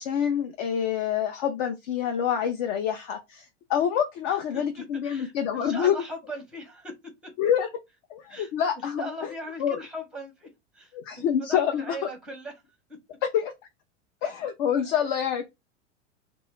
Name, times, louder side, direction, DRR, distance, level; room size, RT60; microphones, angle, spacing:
voice 1, 0.0-5.9 7.4-7.7 8.1-9.0 9.6-9.8 10.9-12.0 13.3-13.5 14.2-15.5, left 8 dB, 40° left, 0.4 m, -26 dB
voice 2, 4.3-6.9 7.2-7.3 8.3-12.6 12.9-13.0 14.8-15.2, equal, ahead, 0.7 m, -40 dB
2.1 x 2.1 x 3.1 m
hypercardioid pair, 95°, 37 cm